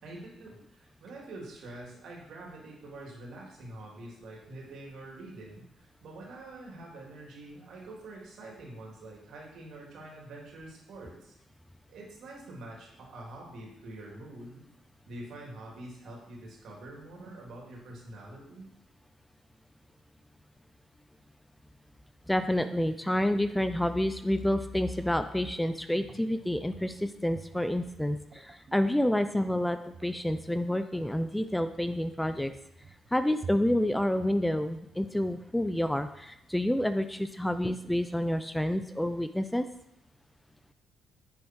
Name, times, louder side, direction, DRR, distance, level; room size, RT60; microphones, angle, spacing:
voice 1, 0.0-11.4 11.9-14.6 15.1-18.7, right 2 dB, 70° right, -2 dB, 3.4 m, -46 dB
voice 2, 22.3-32.5 33.1-39.7, left 1 dB, 5° left, 10 dB, 0.5 m, -29 dB
sound 1, 26.0-37.0, right 4 dB, 45° right, 0.9 m, -51 dB
9.8 x 7.0 x 4.8 m, 0.81 s
cardioid pair, 90°, 0 cm